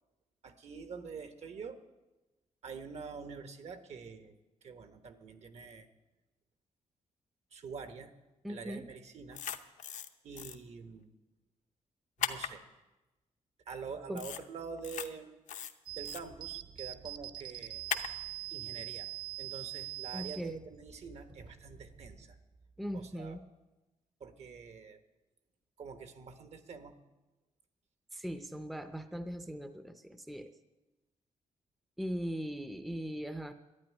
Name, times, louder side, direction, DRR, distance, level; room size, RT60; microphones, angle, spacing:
voice 1, 0.4-1.8 2.6-4.4 4.6-5.9 7.5-8.1 8.5-9.4 10.2-11.1 12.2-12.6 13.7-15.3 15.9-18.0 18.5-19.1 19.4-22.4 22.9-23.4 24.2-25.0 25.8-26.9, right 5 dB, 60° right, 8 dB, 1.2 m, -46 dB
voice 2, 8.4-8.9 14.1-14.3 20.1-20.6 22.8-23.5 28.1-30.5 32.0-33.5, equal, ahead, 9 dB, 0.6 m, -39 dB
sound 1, 9.3-10.1 10.4-10.5 12.2-12.5 14.2-14.4 14.8-15.1 15.5-16.2 17.9-18.1, left 8 dB, 75° left, 0.8 m, -37 dB
sound 2, 15.9-22.3, right 17 dB, 35° right, 0.8 m, -44 dB
12.0 x 9.4 x 10.0 m, 1.1 s
wide cardioid pair, 150°, 13 cm